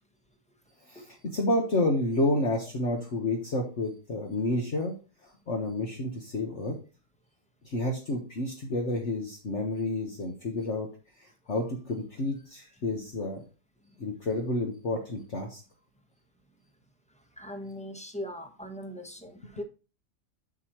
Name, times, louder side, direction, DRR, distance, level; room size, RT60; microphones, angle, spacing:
voice 1, 0.9-4.9 5.2-6.8 7.6-10.9 11.2-13.4 14.0-15.6, left 2 dB, 45° left, 0 dB, 1.6 m, -30 dB
voice 2, 17.4-19.6, equal, 5° left, 5 dB, 0.9 m, -40 dB
8.1 x 7.3 x 3.1 m, 0.33 s
omnidirectional pair, 1.7 m